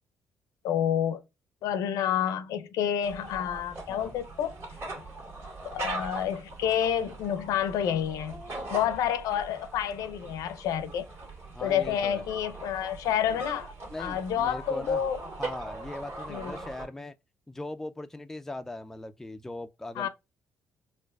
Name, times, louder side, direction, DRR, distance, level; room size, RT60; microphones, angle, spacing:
voice 1, 0.6-1.2 1.6-4.6 5.6-8.4 8.7-11.1 11.6-13.7 14.0-15.2 16.3-16.5 20.0-20.1, left 9 dB, 85° left, 0.5 m, -29 dB
sound 1, 3.0-16.9, right 2 dB, 50° right, 1.8 m, -41 dB
voice 2, 11.5-12.2 13.3-13.4 13.9-15.1 15.4-17.1 17.5-20.1, left 2 dB, 5° left, 0.3 m, -39 dB
4.3 x 2.4 x 2.3 m
cardioid pair, 100°, 6 cm